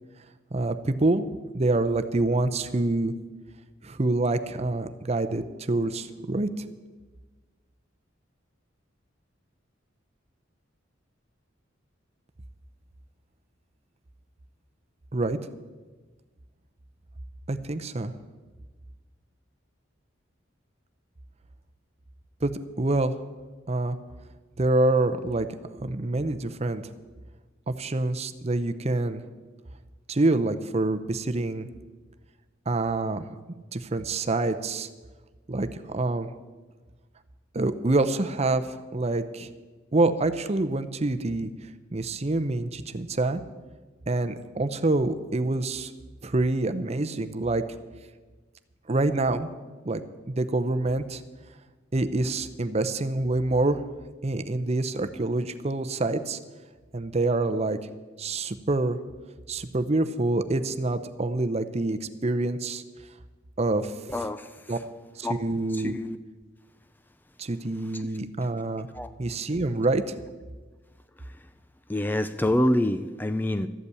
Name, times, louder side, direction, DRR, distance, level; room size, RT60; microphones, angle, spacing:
voice 1, 0.5-1.2 1.5-3.1 3.8-6.6 15.1-15.4 17.5-18.1 22.4-22.5 22.8-23.2 23.7-24.0 24.6-25.5 25.8-26.8 27.7-29.2 30.1-31.7 32.7-33.3 33.7-34.9 35.5-35.7 35.9-36.3 37.5-38.7 38.9-39.5 39.9-41.5 41.9-43.4 44.1-45.9 46.2-47.6 48.9-49.5 49.8-51.2 51.9-53.8 54.2-56.4 56.9-57.8 58.2-59.0 59.5-62.8 63.6-63.9 64.7-64.8 65.2-66.0 67.4-68.9 69.2-70.1, right 2 dB, 35° right, 10 dB, 0.7 m, -26 dB
voice 2, 64.1-64.5 65.2-65.4 65.8-66.2 68.9-69.1 71.9-73.7, left 1 dB, 10° left, 10 dB, 0.4 m, -26 dB
13.5 x 8.2 x 8.4 m, 1.3 s
head